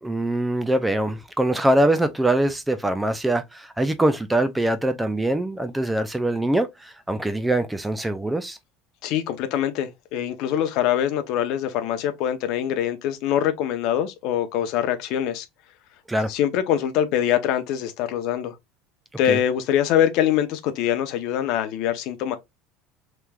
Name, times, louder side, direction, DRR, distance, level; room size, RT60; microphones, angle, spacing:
voice 1, 0.0-8.6 16.1-16.3 19.3-19.4, right 1 dB, 5° right, 0.3 m, -23 dB
voice 2, 9.0-15.5 16.3-18.5 19.2-22.4, left 10 dB, 60° left, 0.6 m, -24 dB
3.4 x 3.0 x 2.3 m
cardioid pair, 145°, 0 cm